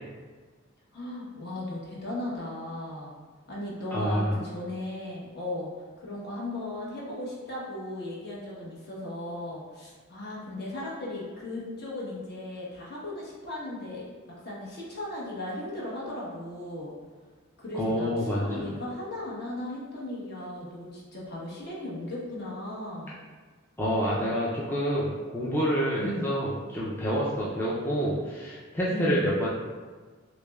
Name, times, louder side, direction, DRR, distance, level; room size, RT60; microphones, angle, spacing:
voice 1, 0.9-3.1 3.5-5.7 6.0-14.1 14.4-16.9 17.6-23.1 26.0-26.3 28.9-29.4, left 1 dB, 55° left, -6 dB, 1.0 m, -36 dB
voice 2, 3.9-4.4 17.7-18.7 23.8-29.5, equal, 10° left, -7 dB, 0.4 m, -28 dB
6.2 x 2.1 x 2.3 m, 1.4 s
head